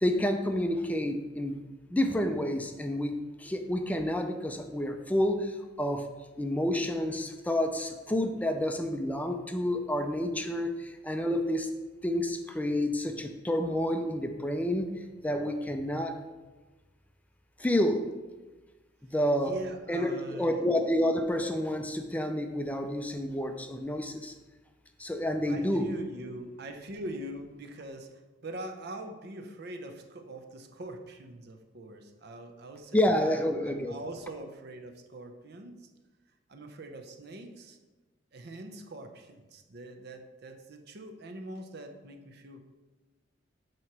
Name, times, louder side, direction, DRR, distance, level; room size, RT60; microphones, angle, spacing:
voice 1, 0.0-1.6 1.9-6.1 6.4-11.7 12.0-14.9 15.2-16.2 17.6-18.0 19.1-19.6 19.9-24.3 25.0-25.9 32.9-33.9, left 1 dB, 10° left, 5 dB, 0.4 m, -29 dB
voice 2, 19.3-20.6 25.5-35.9 36.5-37.8 38.3-42.6, right 1 dB, 60° right, 5 dB, 0.7 m, -43 dB
7.7 x 3.0 x 5.9 m, 1.2 s
head